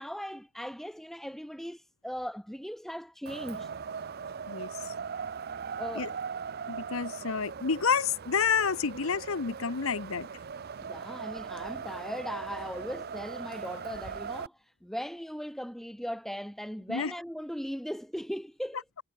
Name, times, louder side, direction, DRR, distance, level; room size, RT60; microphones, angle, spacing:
voice 1, 0.0-3.7 5.7-6.2 10.8-18.8, equal, ahead, 1.3 m, -38 dB
Wind, 3.3-14.5, right 6 dB, 50° right, 0.5 m, -39 dB
voice 2, 4.5-4.9 5.9-6.1 6.7-10.3 16.9-17.1, left 6 dB, 85° left, 0.9 m, -29 dB
head